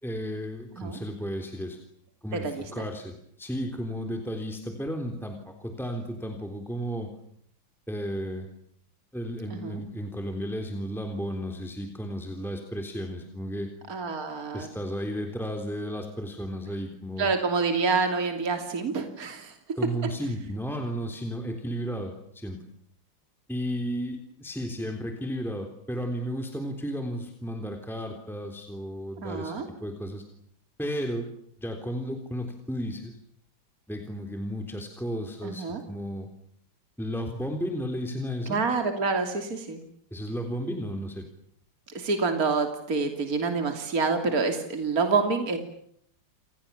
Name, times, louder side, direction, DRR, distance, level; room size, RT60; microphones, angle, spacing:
voice 1, 0.0-1.8 2.2-7.1 7.9-8.5 9.1-13.7 14.5-17.3 19.7-22.6 23.5-30.2 30.8-31.3 31.6-33.2 33.9-36.3 37.0-38.6 40.1-41.3, equal, ahead, 4 dB, 3.5 m, -33 dB
voice 2, 13.9-14.7 17.2-19.5 29.2-29.6 35.4-35.8 38.5-39.8 41.9-45.6, right 4 dB, 45° right, 5 dB, 3.4 m, -27 dB
30.0 x 27.0 x 7.3 m, 0.69 s
omnidirectional pair, 2.2 m